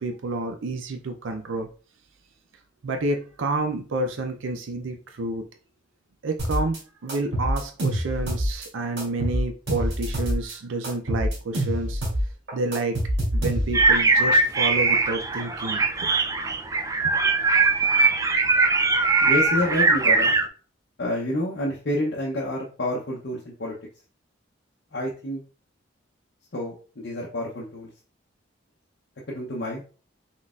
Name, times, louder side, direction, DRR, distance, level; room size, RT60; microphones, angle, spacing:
voice 1, 0.0-1.7 2.8-5.4 6.2-6.8 7.0-12.0 12.5-13.0 13.3-15.8, right 2 dB, 80° right, 5 dB, 0.5 m, -29 dB
sound 1, 6.4-6.8 7.1-8.7 9.0-10.5 10.8-13.9, equal, 60° right, 2.1 m, -26 dB
sound 2, 13.7-20.4, right 3 dB, 15° right, 0.3 m, -21 dB
voice 2, 19.2-20.3 21.0-23.8 24.9-25.4 26.5-27.9 29.3-29.8, left 1 dB, 55° left, -3 dB, 0.7 m, -28 dB
4.1 x 3.9 x 2.3 m, 0.38 s
head